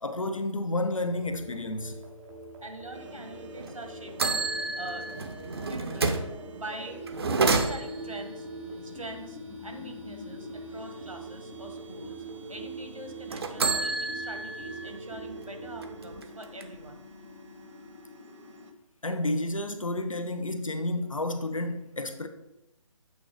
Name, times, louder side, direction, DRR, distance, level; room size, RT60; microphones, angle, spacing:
voice 1, 0.0-2.0 19.0-22.3, left 2 dB, 75° left, 0.9 m, -31 dB
sound 1, 1.0-16.1, right 5 dB, 5° right, 0.5 m, -44 dB
voice 2, 2.6-5.1 5.6-6.2 6.5-7.0 7.4-8.5 8.8-12.2 12.5-17.1, right 1 dB, 80° right, 1.5 m, -44 dB
sound 2, 2.9-18.7, left 3 dB, 65° right, 1.1 m, -46 dB
sound 3, 3.6-3.7 4.2-6.3 7.1-8.2 13.3-14.9 15.3-15.4 15.8-16.9, right 3 dB, 50° right, 0.7 m, -29 dB
8.5 x 4.0 x 4.8 m
figure-of-eight pair, 145°, 17 cm